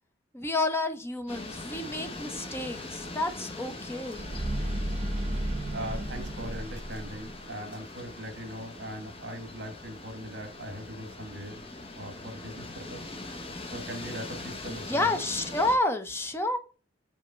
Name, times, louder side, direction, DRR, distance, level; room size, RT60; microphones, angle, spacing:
voice 1, 0.3-4.3 14.9-16.6, left 2 dB, 15° left, 0.8 m, -30 dB
sound 1, 1.3-15.8, left 2 dB, 30° left, 1.2 m, -42 dB
sound 2, 4.1-7.4, right 1 dB, 35° right, 0.9 m, -33 dB
voice 2, 5.7-11.6 11.9-13.0 13.7-15.2, equal, 65° right, 1.5 m, -40 dB
5.3 x 3.6 x 5.5 m
head